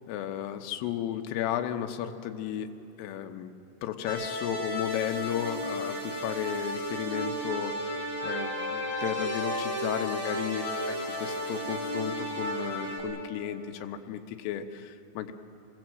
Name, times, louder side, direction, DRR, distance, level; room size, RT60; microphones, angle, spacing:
voice 1, 0.1-3.5 3.8-8.0 8.2-15.3, left 10 dB, 85° left, 5 dB, 3.7 m, -34 dB
sound 1, 4.0-13.0, equal, 20° right, 6.1 m, -33 dB
27.5 x 19.5 x 7.7 m, 2.8 s
omnidirectional pair, 5.8 m